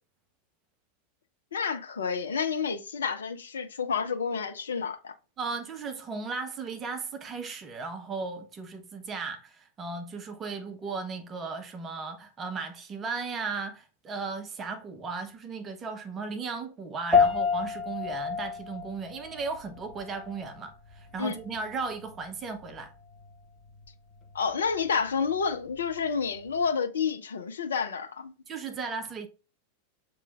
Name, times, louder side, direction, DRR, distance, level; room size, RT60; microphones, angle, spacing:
voice 1, 1.5-5.1 21.2-21.4 24.3-28.3, left 6 dB, 65° left, 0.5 m, -29 dB
voice 2, 5.4-22.9 28.5-29.3, right 4 dB, 25° right, 0.7 m, -36 dB
sound 1, 17.1-26.7, left 5 dB, 15° left, 1.0 m, -31 dB
6.9 x 3.1 x 2.3 m
figure-of-eight pair, 90°, 0 cm